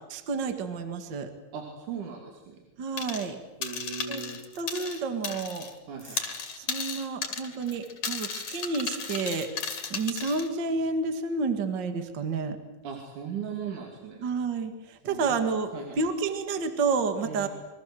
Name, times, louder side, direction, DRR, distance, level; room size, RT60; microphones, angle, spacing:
voice 1, 0.1-1.3 2.8-3.4 4.1-4.2 4.6-5.7 6.1-6.2 6.6-9.5 9.9-12.6 14.2-17.5, right 4 dB, 40° right, 7 dB, 2.2 m, -30 dB
voice 2, 1.5-2.6 3.6-4.4 5.9-6.2 12.8-14.3 15.1-15.3 15.7-16.0 17.2-17.5, right 7 dB, 70° right, 1 dB, 4.1 m, -38 dB
sound 1, 3.0-3.3 3.6-5.7 6.0-10.5, left 6 dB, 55° left, 3.5 m, -35 dB
28.5 x 23.0 x 7.8 m, 1.1 s
omnidirectional pair, 3.7 m